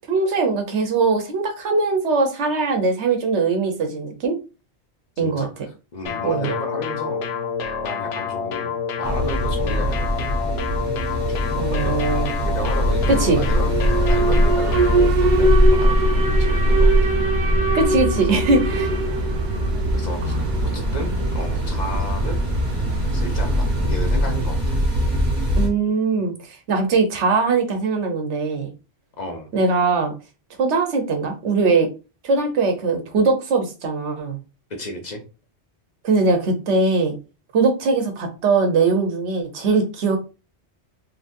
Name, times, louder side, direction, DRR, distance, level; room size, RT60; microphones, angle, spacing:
voice 1, 0.1-4.4 5.2-5.5 6.2-6.5 11.6-12.4 13.1-13.4 17.7-18.9 20.2-20.6 25.6-28.7 29.5-30.1 30.6-31.9 32.2-34.4 36.0-37.1 37.5-40.2, right 4 dB, 90° right, 6 dB, 1.1 m, -21 dB
voice 2, 5.2-5.5 5.9-7.3 7.8-10.4 11.2-16.9 18.1-19.0 19.9-20.3 20.7-22.4 23.1-25.3 29.2-29.5 34.7-35.2, left 1 dB, 45° left, 3 dB, 0.9 m, -33 dB
sound 1, 6.1-15.1, left 6 dB, 70° left, 0.8 m, -28 dB
sound 2, 9.0-25.7, equal, 30° right, 1.1 m, -24 dB
Alarm, 12.9-24.9, right 1 dB, 50° right, 0.8 m, -21 dB
3.9 x 2.8 x 2.6 m, 0.31 s
omnidirectional pair, 1.1 m